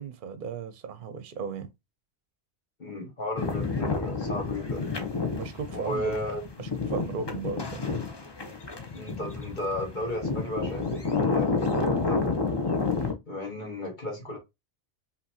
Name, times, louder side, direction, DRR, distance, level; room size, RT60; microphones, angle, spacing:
voice 1, 0.0-1.7 5.3-6.2 6.6-7.9, right 6 dB, 60° right, 0.7 m, -36 dB
voice 2, 2.8-5.0 5.7-6.4 8.9-12.4 13.3-14.4, left 1 dB, 50° left, 1.6 m, -34 dB
sound 1, 3.4-13.1, left 4 dB, 25° left, 0.7 m, -30 dB
5.5 x 2.8 x 2.8 m
omnidirectional pair, 1.1 m